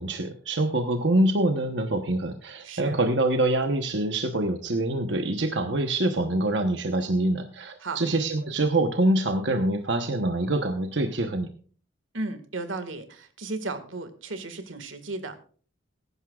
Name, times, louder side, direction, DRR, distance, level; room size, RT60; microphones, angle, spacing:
voice 1, 0.0-11.5, right 1 dB, 65° right, 6 dB, 1.0 m, -25 dB
voice 2, 2.6-3.0 7.8-8.0 12.1-15.4, right 3 dB, 90° right, 9 dB, 1.8 m, -34 dB
20.5 x 11.0 x 2.4 m, 0.43 s
head